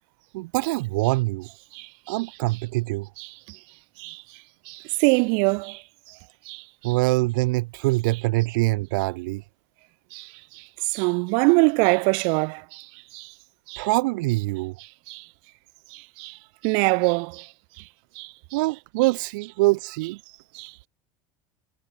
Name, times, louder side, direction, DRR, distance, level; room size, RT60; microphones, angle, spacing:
voice 1, 0.3-1.5 2.1-3.1 6.8-9.4 13.8-14.8 18.5-20.2, right 22 dB, 85° right, 3.9 m, -24 dB
voice 2, 1.7-2.2 3.2-3.6 4.0-4.2 4.7-5.8 6.5-6.9 10.1-12.9 13.1-13.3 13.7-13.9 15.1-15.3 15.9-16.4 16.6-17.5 18.2-18.6 20.5-20.7, right 37 dB, 60° right, 5.2 m, -24 dB
cardioid pair, 170°, 10 cm